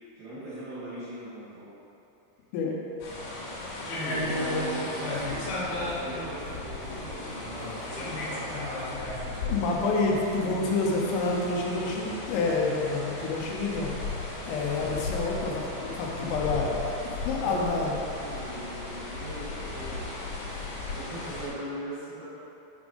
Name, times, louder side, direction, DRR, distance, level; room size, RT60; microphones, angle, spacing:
voice 1, 0.2-1.7 3.9-9.0 17.3-17.9 18.2-20.0 20.5-22.2, right 1 dB, 65° right, -10 dB, 2.5 m, -40 dB
sound 1, 3.0-21.5, left 2 dB, 65° left, 3.7 m, -35 dB
sound 2, 5.1-20.2, left 2 dB, 85° right, 3.1 m, -47 dB
voice 2, 9.5-13.9 14.5-16.8 17.3-18.0, left 3 dB, 90° left, -1 dB, 3.5 m, -28 dB
9.1 x 3.5 x 5.3 m, 2.9 s
omnidirectional pair, 5.7 m